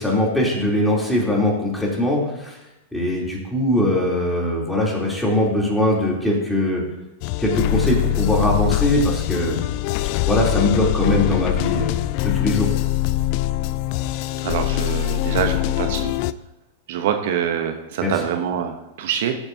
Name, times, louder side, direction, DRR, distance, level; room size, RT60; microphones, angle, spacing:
voice 1, 0.0-2.6 2.9-6.8 7.4-9.6 10.2-11.9 12.2-12.7 18.0-18.2, left 1 dB, 5° left, -4 dB, 3.1 m, -21 dB
sound 1, 7.2-16.3, left 14 dB, 50° left, 0.3 m, -23 dB
voice 2, 14.4-16.1 16.9-19.3, right 8 dB, 65° right, 6 dB, 0.9 m, -25 dB
14.5 x 7.2 x 2.7 m, 0.94 s
hypercardioid pair, 105°, 0 cm